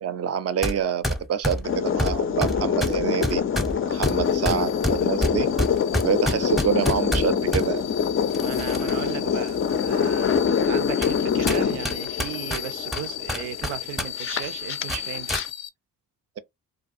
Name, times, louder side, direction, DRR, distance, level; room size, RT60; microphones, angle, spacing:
voice 1, 0.0-3.4 3.9-5.5 6.0-7.8, right 8 dB, 35° right, 0.5 m, -27 dB
sound 1, 0.6-0.8 1.0-7.7 8.3-9.1 9.5-9.6 10.3-10.4 11.0-11.2 11.5-14.1 14.3-14.5 14.9-15.5, equal, ahead, 0.7 m, -27 dB
sound 2, 1.6-15.5, left 7 dB, 30° left, 0.4 m, -25 dB
sound 3, 3.9-15.7, left 13 dB, 80° left, 0.5 m, -37 dB
voice 2, 8.4-15.4, right 11 dB, 85° right, 0.5 m, -36 dB
2.4 x 2.2 x 2.5 m
hypercardioid pair, 45°, 43 cm